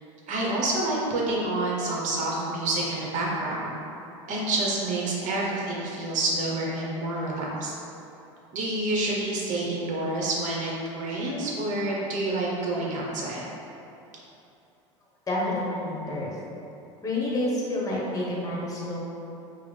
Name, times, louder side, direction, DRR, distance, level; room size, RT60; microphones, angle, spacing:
voice 1, 0.3-3.8 4.3-7.7 8.5-13.4, right 2 dB, 50° right, -3 dB, 1.0 m, -28 dB
voice 2, 15.3-16.3 17.0-19.1, left 1 dB, 20° left, -4 dB, 1.0 m, -29 dB
4.7 x 2.1 x 3.3 m, 2.9 s
hypercardioid pair, 85°, 17 cm